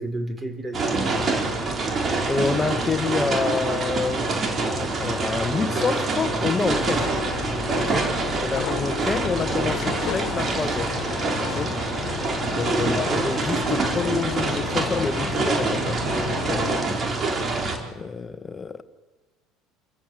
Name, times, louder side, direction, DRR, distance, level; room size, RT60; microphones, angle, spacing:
voice 1, 0.0-1.7 7.8-8.1 12.8-13.0, right 1 dB, 20° right, 4.5 m, -32 dB
sound 1, 0.7-17.8, right 3 dB, 35° right, 4.2 m, -26 dB
voice 2, 2.3-4.3 4.7-7.1 8.4-11.0 11.4-11.8 12.6-16.0 16.5-16.7 17.9-18.8, left 5 dB, 25° left, 1.5 m, -28 dB
sound 2, 6.6-16.8, left 9 dB, 65° left, 1.8 m, -33 dB
28.5 x 15.0 x 7.8 m
supercardioid pair, 100°, 0 cm